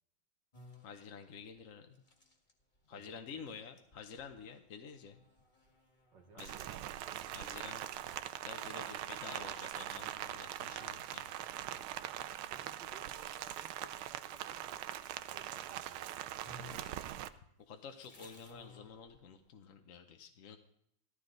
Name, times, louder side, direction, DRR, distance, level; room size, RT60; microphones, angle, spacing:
sound 1, 0.5-13.7 14.4-15.8 16.1-16.2 16.4-19.5, left 2 dB, 25° left, 1.8 m, -62 dB
voice 1, 0.8-1.9 2.9-5.2 6.3-6.6 7.3-7.9 8.4-11.3 17.7-20.6, left 6 dB, 50° left, 5 dB, 1.0 m, -50 dB
voice 2, 2.9-3.5 6.1-6.9 8.1-8.2 12.5-14.9 15.3-16.4, right 4 dB, 60° right, 5 dB, 2.0 m, -60 dB
Rain, 6.4-17.3, right 12 dB, 85° right, 1.5 m, -42 dB
15.5 x 13.0 x 3.9 m, 0.72 s
omnidirectional pair, 2.3 m